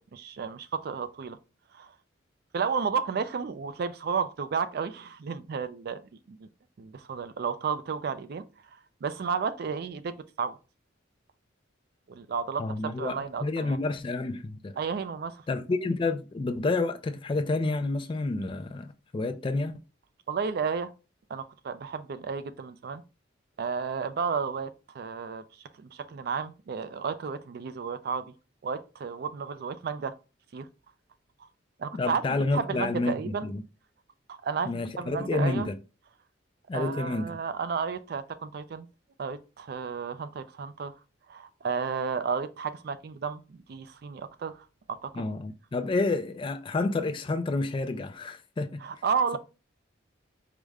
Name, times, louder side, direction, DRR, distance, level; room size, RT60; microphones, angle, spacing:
voice 1, 0.1-1.4 1.7-1.9 2.5-6.0 6.3-6.5 6.8-8.4 8.7-10.6 12.1-13.8 14.8-15.4 20.3-20.9 21.3-23.0 23.6-24.7 24.9-25.4 25.8-28.3 28.6-30.1 30.5-30.7 31.8-33.5 34.3-35.7 36.7-38.9 39.2-40.9 41.3-45.2 48.8-49.4, right 5 dB, 50° right, 0.3 m, -32 dB
voice 2, 12.6-14.8 15.5-19.8 31.9-33.1 33.4-33.6 34.6-35.8 36.7-37.3 45.2-48.8, left 3 dB, 25° left, 0.3 m, -29 dB
4.9 x 2.1 x 3.4 m
head